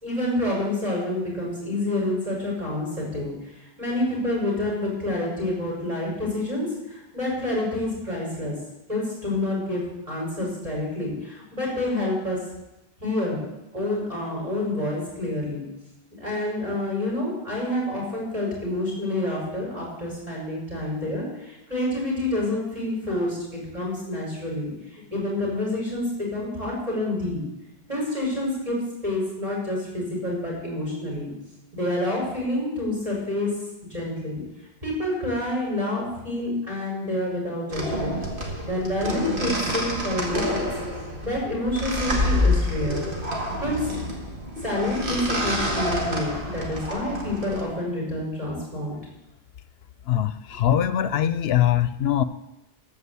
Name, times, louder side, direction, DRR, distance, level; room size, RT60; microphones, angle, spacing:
voice 1, 0.0-8.6 8.9-12.4 13.0-13.4 13.7-15.6 16.2-27.4 27.9-28.8 29.0-31.3 31.7-33.5 33.9-34.4 34.8-38.2 38.6-40.7 41.2-43.0 43.6-44.1 44.6-49.0, left 1 dB, 35° right, -4 dB, 5.5 m, -28 dB
sound 1, 37.7-47.6, left 1 dB, 55° right, 2.3 m, -27 dB
voice 2, 50.1-52.2, left 11 dB, 80° left, 14 dB, 0.8 m, -22 dB
14.0 x 5.2 x 8.2 m, 0.93 s
omnidirectional pair, 1.0 m